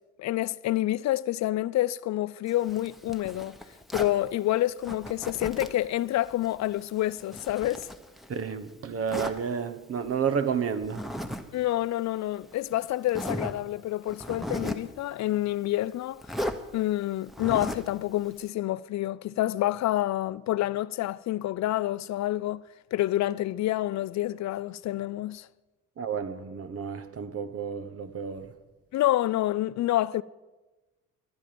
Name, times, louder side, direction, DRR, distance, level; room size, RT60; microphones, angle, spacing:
voice 1, 0.2-3.6 3.9-7.9 11.5-16.2 16.7-22.6 22.9-25.5 28.9-30.2, left 15 dB, 65° left, 0.4 m, -28 dB
Zipper (clothing), 2.5-4.2 4.8-5.9 6.2-8.5 9.1-9.4 10.8-11.4 11.7-11.8 12.5-12.6 13.1-13.6 14.1-14.9 16.2-16.6 17.3-17.9, equal, ahead, 1.1 m, -36 dB
voice 2, 8.3-11.0 26.0-28.5, right 7 dB, 50° right, 1.2 m, -31 dB
24.5 x 9.1 x 5.2 m
cardioid pair, 90°, 30 cm